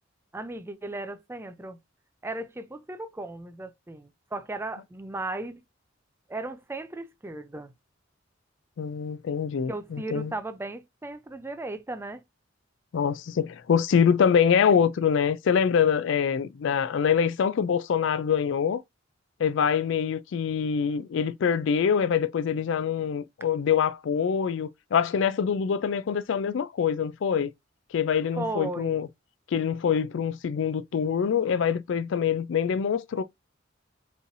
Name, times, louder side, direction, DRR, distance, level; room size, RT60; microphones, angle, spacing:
voice 1, 0.3-1.8 2.2-5.6 6.3-7.7 9.7-12.2 28.4-29.0, right 2 dB, 10° right, 0.4 m, -36 dB
voice 2, 8.8-10.3 12.9-18.8 19.4-27.5 27.9-29.1 29.5-33.2, left 7 dB, 65° left, 0.3 m, -25 dB
5.3 x 3.2 x 2.5 m
head